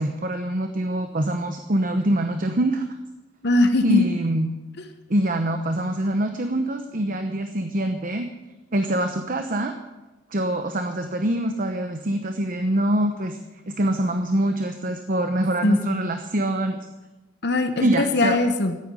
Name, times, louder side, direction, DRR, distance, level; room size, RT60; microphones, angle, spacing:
voice 1, 0.0-2.8 3.8-4.5 5.1-8.3 8.7-9.7 10.3-13.4 13.7-16.9 17.8-18.4, right 1 dB, 45° right, 6 dB, 1.0 m, -24 dB
voice 2, 3.4-4.1 15.6-16.0 17.4-18.8, left 2 dB, 60° left, 8 dB, 1.1 m, -21 dB
14.5 x 9.3 x 8.3 m, 1.1 s
head